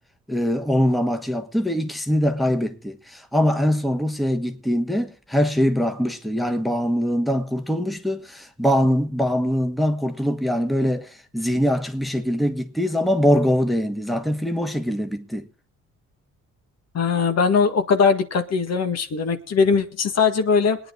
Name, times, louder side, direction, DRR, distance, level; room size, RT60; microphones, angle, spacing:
voice 1, 0.3-15.5, equal, ahead, 1.3 m, -23 dB
voice 2, 16.9-20.8, left 5 dB, 55° left, 1.7 m, -20 dB
21.5 x 9.5 x 3.8 m
cardioid pair, 90°, 30 cm